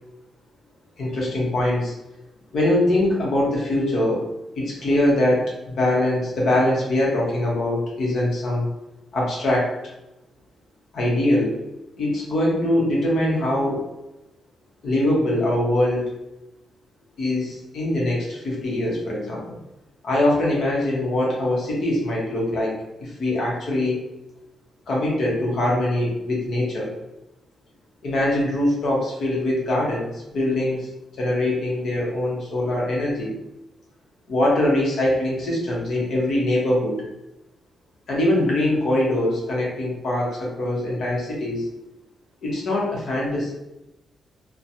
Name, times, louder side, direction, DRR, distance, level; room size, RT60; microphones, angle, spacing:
voice 1, 1.0-1.9 2.5-4.2 4.6-8.7 9.1-9.7 10.9-11.6 12.0-13.8 14.8-16.1 17.2-19.6 20.0-22.7 23.0-24.0 24.9-26.9 28.0-30.9 31.2-33.3 34.3-37.0 38.1-41.6 42.4-43.5, left 1 dB, 60° left, -4 dB, 1.0 m, -22 dB
3.1 x 2.2 x 2.7 m, 0.94 s
cardioid pair, 145°, 0 cm